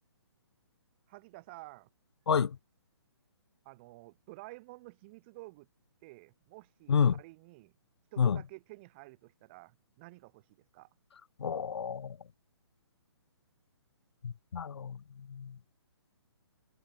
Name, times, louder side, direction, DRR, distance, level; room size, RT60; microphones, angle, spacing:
voice 1, 1.1-1.9 3.6-5.7 6.0-7.7 8.1-10.5 10.7-10.9, right 23 dB, 25° right, 5.0 m, -51 dB
voice 2, 11.4-12.2 14.2-15.0 15.3-15.5, left 7 dB, 75° left, 0.9 m, -29 dB
hypercardioid pair, 165°, 14 cm